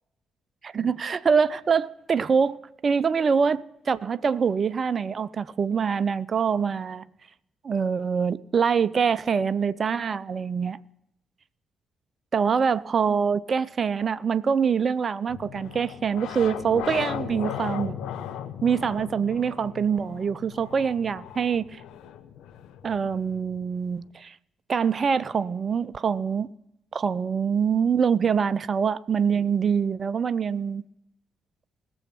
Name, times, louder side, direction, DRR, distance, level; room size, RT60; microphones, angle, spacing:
voice 1, 0.7-7.0 7.6-10.8 12.3-18.0 18.6-21.8 22.8-24.4 24.7-26.5 26.9-30.8, right 6 dB, 40° right, 0.4 m, -24 dB
sound 1, 15.3-24.0, left 10 dB, 60° left, 0.8 m, -37 dB
19.5 x 7.1 x 5.6 m
figure-of-eight pair, 40°, 0 cm